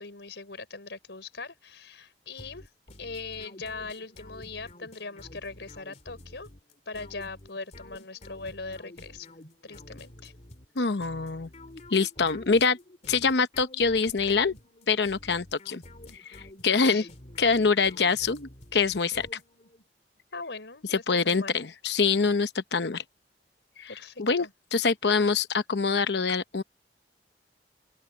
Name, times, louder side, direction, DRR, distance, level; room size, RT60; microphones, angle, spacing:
voice 1, 0.0-2.7 3.0-6.5 6.9-9.3 9.6-10.3 16.7-17.1 20.3-21.6 23.9-24.5, left 4 dB, 90° left, 4.2 m, -40 dB
sound 1, 2.4-19.9, left 1 dB, 40° left, 2.8 m, -49 dB
voice 2, 10.8-11.5 11.9-12.8 13.1-14.5 14.9-15.8 16.2-17.0 17.4-19.3 20.9-23.0 23.8-23.9 24.2-24.5 24.7-26.6, left 4 dB, 70° left, 0.9 m, -25 dB
open air
head